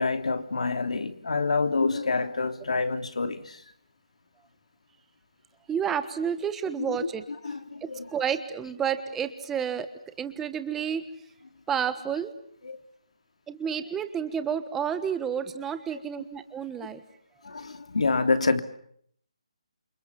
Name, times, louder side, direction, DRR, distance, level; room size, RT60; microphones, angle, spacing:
voice 1, 0.0-3.6 6.8-7.1 7.4-8.1 12.6-12.8 17.4-18.6, left 4 dB, 75° left, 3.1 m, -27 dB
voice 2, 5.7-7.2 7.8-9.9 10.2-11.0 11.7-12.3 13.5-17.0, right 8 dB, 5° right, 1.2 m, -30 dB
29.5 x 28.0 x 7.1 m
hypercardioid pair, 175°, 3 cm